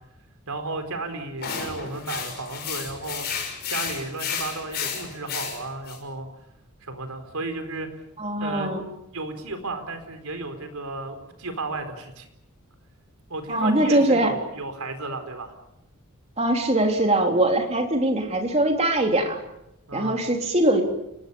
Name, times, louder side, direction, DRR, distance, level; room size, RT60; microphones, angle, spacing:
voice 1, 0.5-6.3 6.8-7.9 8.4-8.7 9.1-12.3 13.3-15.5 19.9-20.2, right 2 dB, 80° right, 8 dB, 4.4 m, -33 dB
sound 1, 1.4-6.0, left 6 dB, 45° left, 6.2 m, -32 dB
voice 2, 8.2-8.8 13.5-14.3 16.4-19.4 19.9-20.8, right 1 dB, 30° right, 3 dB, 3.5 m, -22 dB
29.5 x 19.5 x 7.1 m, 0.83 s
head